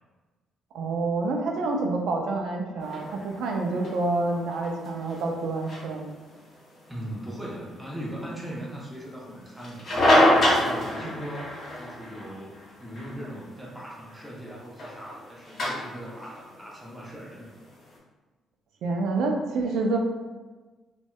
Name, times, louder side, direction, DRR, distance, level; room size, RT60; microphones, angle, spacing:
voice 1, 0.7-6.2 11.0-11.1 18.8-20.0, right 3 dB, 80° right, 1 dB, 0.3 m, -28 dB
sound 1, 2.8-17.9, left 1 dB, 55° left, 0.7 m, -29 dB
voice 2, 6.9-9.8 10.5-17.5, equal, 5° right, -5 dB, 0.7 m, -39 dB
2.6 x 2.1 x 2.2 m, 1.3 s
cardioid pair, 90°, 0 cm